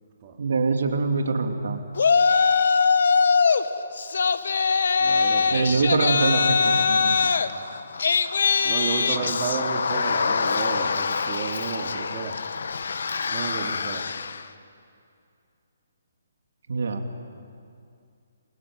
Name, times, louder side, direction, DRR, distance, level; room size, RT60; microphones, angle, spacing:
voice 1, 0.4-1.8 5.5-7.3 9.1-9.3 16.7-17.0, right 4 dB, 70° right, 4 dB, 3.0 m, -24 dB
Yell, 2.0-3.6 4.0-14.4, left 5 dB, 70° left, 1.2 m, -23 dB
voice 2, 5.0-6.1 8.6-12.4 13.3-14.1, right 6 dB, 35° right, 1 dB, 2.4 m, -33 dB
27.5 x 23.5 x 9.1 m, 2.4 s
hypercardioid pair, 150°, 0 cm